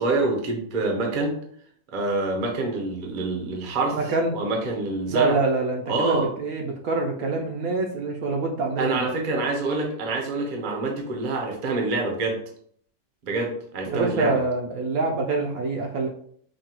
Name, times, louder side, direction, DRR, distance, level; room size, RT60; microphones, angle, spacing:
voice 1, 0.0-1.3 1.9-5.4 5.9-6.3 8.8-12.4 13.2-14.4, right 2 dB, 45° right, 1 dB, 0.6 m, -26 dB
voice 2, 3.9-4.4 5.1-9.2 13.9-16.1, right 3 dB, 70° right, 1 dB, 0.9 m, -25 dB
5.4 x 2.3 x 2.9 m, 0.62 s
omnidirectional pair, 1.8 m